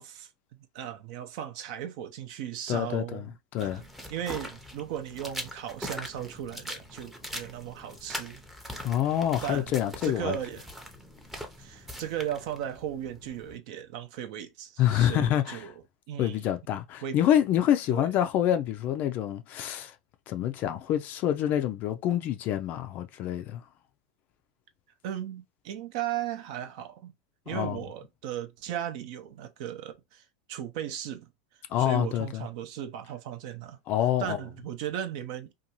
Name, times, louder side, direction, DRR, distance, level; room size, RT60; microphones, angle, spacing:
voice 1, 0.0-3.8 4.1-8.4 8.7-8.9 9.4-9.7 10.0-10.7 11.6-15.7 16.1-16.5 17.0-17.2 17.9-18.1 25.0-27.1 27.5-31.3 31.8-33.8 34.2-35.5, right 10 dB, 60° right, 0.5 m, -36 dB
voice 2, 2.7-3.8 8.8-10.4 14.8-15.7 16.2-19.9 20.3-23.6 27.5-27.8 31.7-32.4 33.9-34.4, left 11 dB, 45° left, 0.3 m, -27 dB
sound 1, 3.6-13.6, equal, 5° right, 0.6 m, -42 dB
2.6 x 2.3 x 2.9 m
hypercardioid pair, 115°, 4 cm